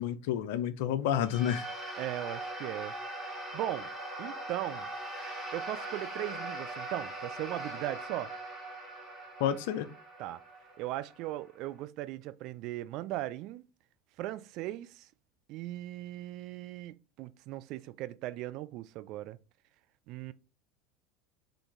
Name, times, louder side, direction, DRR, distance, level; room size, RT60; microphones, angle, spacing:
voice 1, 0.0-1.7 9.4-9.9, left 10 dB, 65° left, 0.5 m, -30 dB
sound 1, 1.2-11.8, right 1 dB, 15° right, 2.1 m, -41 dB
voice 2, 2.0-3.3 3.5-3.9 4.2-4.9 5.5-8.3 10.2-10.4 10.8-13.6 14.2-15.1 15.5-19.4 20.1-20.3, right 15 dB, 55° right, 0.3 m, -38 dB
3.8 x 3.4 x 3.7 m
figure-of-eight pair, 75°, 0 cm